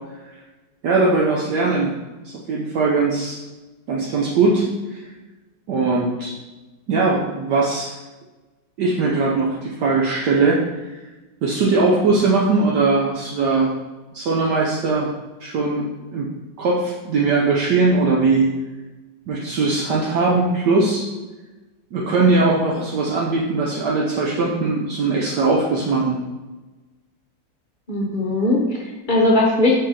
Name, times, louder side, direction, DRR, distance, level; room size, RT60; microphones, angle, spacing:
voice 1, 0.8-1.9 2.2-3.3 3.9-5.0 5.7-6.3 6.9-7.9 8.8-10.7 11.4-13.7 14.1-15.1 15.4-15.8 16.1-16.3 16.6-18.4 19.3-21.0 21.9-26.2, right 3 dB, 70° right, -3 dB, 1.3 m, -20 dB
voice 2, 27.9-29.7, left 2 dB, 35° left, -2 dB, 0.8 m, -19 dB
6.9 x 3.8 x 4.2 m, 1.1 s
omnidirectional pair, 2.0 m